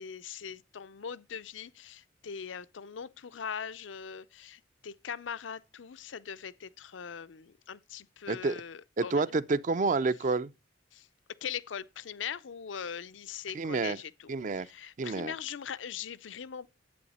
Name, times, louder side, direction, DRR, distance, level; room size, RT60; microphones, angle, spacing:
voice 1, 0.0-9.3 10.9-11.1 11.4-14.3 14.6-16.7, left 7 dB, 85° left, 0.5 m, -41 dB
voice 2, 8.3-8.6 9.0-10.5 13.5-14.0 14.3-14.7 15.0-15.3, right 3 dB, 40° right, 0.4 m, -29 dB
11.0 x 8.6 x 4.2 m
head